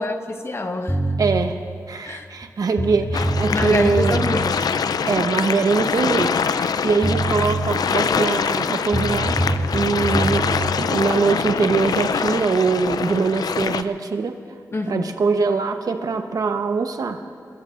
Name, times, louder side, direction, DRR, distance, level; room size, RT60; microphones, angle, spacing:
voice 1, 0.0-1.0 2.0-2.3 3.5-5.0 14.7-15.1, left 2 dB, 45° left, 4 dB, 1.3 m, -27 dB
sound 1, 0.9-1.4 2.4-2.5 2.8-4.4 6.7-6.8 7.0-7.7 8.9-10.7, right 1 dB, 10° left, 1.8 m, -24 dB
voice 2, 1.2-1.6 1.9-4.2 5.0-9.3 9.7-10.5 10.8-14.3 14.9-17.2, right 4 dB, 75° right, 6 dB, 1.0 m, -22 dB
sound 2, 3.1-13.8, left 6 dB, 90° left, 0.5 m, -24 dB
25.0 x 20.5 x 2.5 m, 2.1 s
wide cardioid pair, 80°, 6 cm